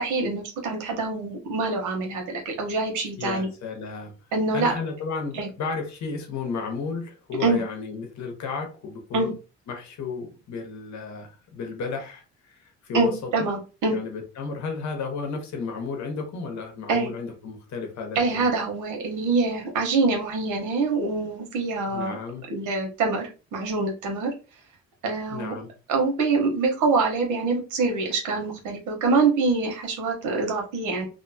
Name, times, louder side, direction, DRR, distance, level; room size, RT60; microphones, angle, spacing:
voice 1, 0.0-3.5 4.3-4.7 5.3-5.5 7.4-7.6 9.1-9.3 12.9-14.0 16.9-17.1 18.1-22.2 22.5-24.3 25.0-25.5 25.9-31.1, right 3 dB, 85° right, 1.0 m, -25 dB
voice 2, 3.2-4.1 4.5-9.3 9.7-13.1 13.9-18.4 21.8-22.4 25.3-25.7, left 4 dB, 65° left, 1.0 m, -33 dB
2.7 x 2.2 x 2.7 m
cardioid pair, 90°, 30 cm